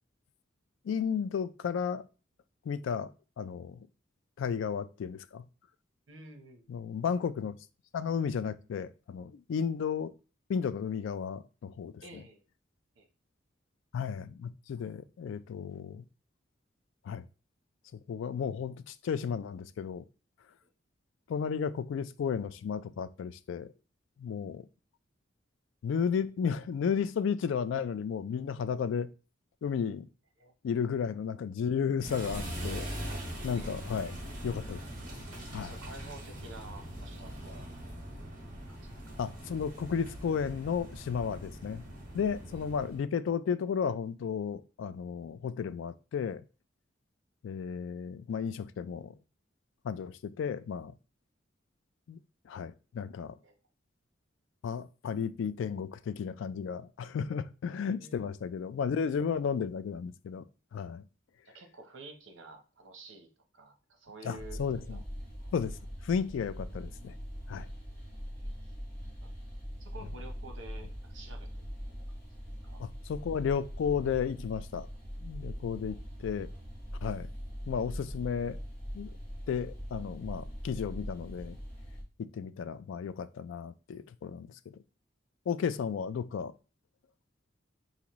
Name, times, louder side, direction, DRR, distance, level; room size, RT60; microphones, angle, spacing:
voice 1, 0.8-2.0 2.7-3.1 3.4-3.9 4.4-5.4 6.7-7.6 7.9-10.1 10.5-12.2 13.9-16.0 17.0-17.2 18.1-20.0 21.3-23.7 24.2-24.7 25.8-29.1 29.6-30.1 30.6-34.2 34.4-34.8 35.5-35.8 39.2-41.8 42.1-46.4 47.4-49.1 49.8-50.9 52.1-52.2 52.5-53.3 54.6-60.4 60.7-61.0 64.2-65.0 65.5-65.8 66.0-67.1 67.5-67.7 72.8-74.9 75.2-76.5 77.0-77.3 77.7-78.6 78.9-79.1 79.5-81.6 82.2-84.5 85.5-86.5, left 6 dB, 80° left, 0.3 m, -33 dB
voice 2, 6.1-6.8 12.0-12.4 13.0-13.1 20.6-20.7 30.4-30.5 33.5-33.8 35.6-37.7 38.7-39.0 42.5-42.6 53.4-53.5 57.9-58.3 61.4-63.3 63.5-64.6 64.9-65.0 68.3-68.5 69.2-69.3 69.8-71.7 72.3-72.4 72.6-72.8 75.9-76.0, right 2 dB, 80° right, 0.8 m, -50 dB
sound 1, 32.0-43.0, equal, 45° right, 1.4 m, -41 dB
sound 2, 64.4-82.0, equal, 10° left, 1.4 m, -42 dB
5.0 x 2.6 x 3.0 m
head